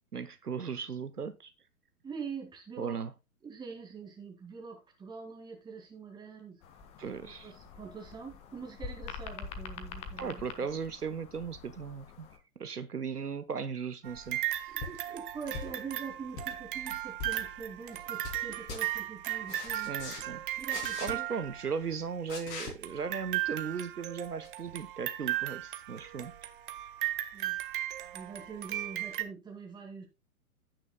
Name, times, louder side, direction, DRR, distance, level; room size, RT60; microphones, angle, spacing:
voice 1, 0.1-1.5 2.8-3.1 7.0-7.5 10.2-12.3 12.6-14.7 19.7-20.4 21.0-26.3, right 6 dB, 80° right, 1.0 m, -37 dB
voice 2, 2.0-3.0 3.4-6.6 7.2-10.7 14.7-20.0 20.6-21.3 27.3-27.6 28.1-30.1, right 5 dB, 10° right, 2.3 m, -44 dB
sound 1, 6.6-12.4, left 5 dB, 15° left, 0.7 m, -46 dB
sound 2, 14.0-21.9 22.8-29.2, right 14 dB, 35° right, 0.9 m, -36 dB
sound 3, 14.8-15.0 15.5-15.9 16.2-16.5 17.2-17.4 17.9-18.4 18.7-18.8 19.5-20.2 20.7-21.1 22.3-22.7 24.4-24.5, left 4 dB, 30° left, 3.1 m, -41 dB
16.0 x 6.2 x 2.2 m
figure-of-eight pair, 115°, 45 cm